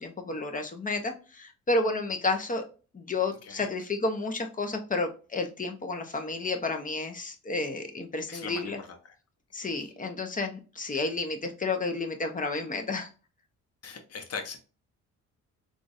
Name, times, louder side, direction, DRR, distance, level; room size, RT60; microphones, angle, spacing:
voice 1, 0.0-2.6 2.9-8.8 9.5-13.1, left 3 dB, 25° left, 5 dB, 0.8 m, -31 dB
voice 2, 8.3-9.0 13.8-14.6, left 5 dB, 50° left, 6 dB, 0.9 m, -39 dB
3.7 x 2.5 x 2.6 m, 0.35 s
cardioid pair, 75°, 32 cm